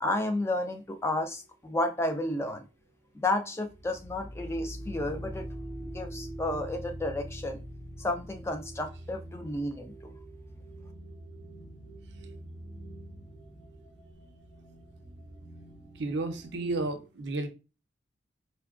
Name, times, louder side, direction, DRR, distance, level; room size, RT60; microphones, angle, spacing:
voice 1, 0.0-2.7 3.1-5.5 5.8-7.6 8.0-10.1, left 2 dB, 15° left, 6 dB, 0.3 m, -32 dB
sound 1, 3.7-16.8, equal, 60° left, 1.7 m, -44 dB
voice 2, 16.0-17.5, right 2 dB, 70° right, 6 dB, 0.5 m, -32 dB
4.4 x 2.1 x 2.4 m, 0.30 s
head